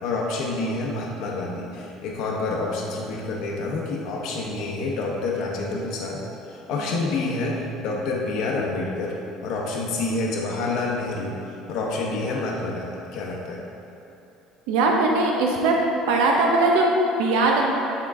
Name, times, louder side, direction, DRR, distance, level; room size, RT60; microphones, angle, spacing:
voice 1, 0.0-9.1 9.4-11.4 11.7-13.6, left 3 dB, 55° left, -2 dB, 0.7 m, -28 dB
voice 2, 14.7-15.7 16.1-17.7, right 2 dB, 80° right, 0 dB, 0.6 m, -20 dB
8.2 x 3.7 x 3.6 m, 2.8 s
cardioid pair, 165°, 0 cm